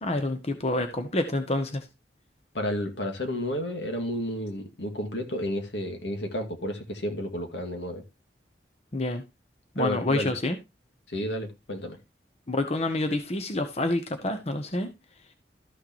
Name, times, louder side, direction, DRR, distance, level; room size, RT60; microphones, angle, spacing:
voice 1, 0.0-1.9 8.9-9.2 9.7-10.6 12.5-14.9, left 2 dB, 35° left, 0.9 m, -28 dB
voice 2, 2.5-8.0 9.8-10.3 11.1-12.0, equal, 80° left, 2.1 m, -31 dB
13.0 x 6.5 x 3.0 m
head